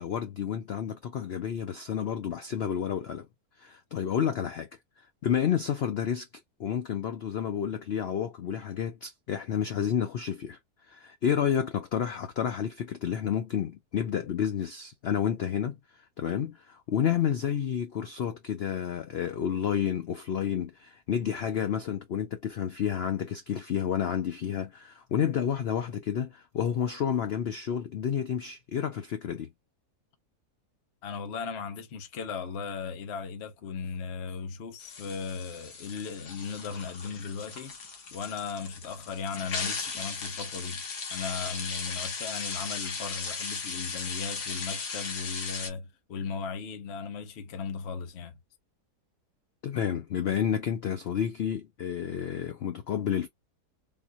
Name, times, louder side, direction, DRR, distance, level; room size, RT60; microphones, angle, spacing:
voice 1, 0.0-3.3 3.6-4.7 5.2-6.3 6.6-10.6 10.9-29.5 49.6-53.3, left 8 dB, 85° left, 0.5 m, -30 dB
voice 2, 31.0-37.8 38.1-40.8 41.1-48.4, left 5 dB, 50° left, 1.0 m, -37 dB
sound 1, 34.8-45.7, left 5 dB, 70° left, 1.5 m, -37 dB
3.7 x 2.7 x 2.3 m
omnidirectional pair, 1.7 m